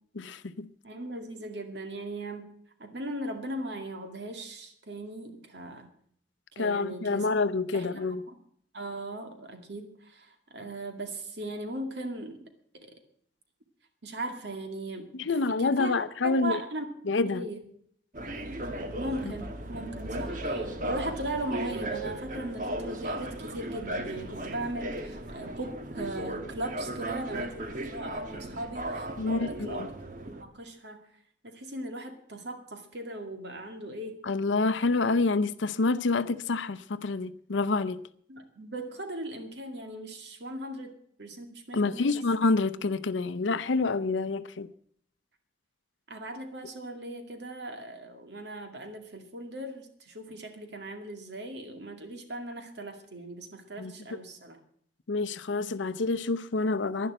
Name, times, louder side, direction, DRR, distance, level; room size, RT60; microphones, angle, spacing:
voice 1, 0.1-0.7 6.6-8.2 15.1-16.6 17.1-17.5 19.2-19.3 29.2-29.9 34.2-38.0 41.7-44.7 53.8-53.9 55.1-57.1, left 3 dB, 85° left, 0.6 m, -27 dB
voice 2, 0.8-2.5 2.8-5.9 6.6-7.3 7.7-8.4 8.7-12.5 12.7-13.0 14.0-15.1 15.6-16.8 17.3-17.6 18.9-29.8 30.2-31.0 31.4-34.2 38.3-42.2 46.1-54.6, right 1 dB, 70° right, 2.2 m, -38 dB
sound 1, 18.1-30.4, right 1 dB, 45° right, 1.2 m, -36 dB
11.0 x 11.0 x 7.7 m
head